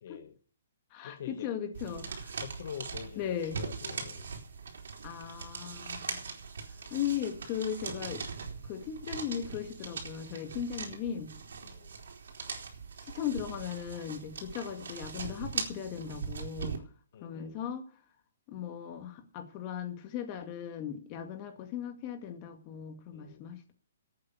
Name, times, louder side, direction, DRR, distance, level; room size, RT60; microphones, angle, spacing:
voice 1, 0.0-0.3 1.0-1.5 2.4-4.3 6.7-7.0 11.6-11.9 17.1-17.6 23.1-23.5, left 8 dB, 50° left, 8 dB, 1.0 m, -45 dB
voice 2, 0.9-2.4 3.2-3.6 5.0-6.3 6.7-8.3 8.6-11.3 13.0-16.8 17.2-17.9 18.5-23.7, left 9 dB, 25° left, 6 dB, 2.0 m, -37 dB
sound 1, 1.7-16.8, right 5 dB, 75° right, 3.5 m, -41 dB
12.0 x 8.7 x 8.2 m, 0.43 s
hypercardioid pair, 165°, 0 cm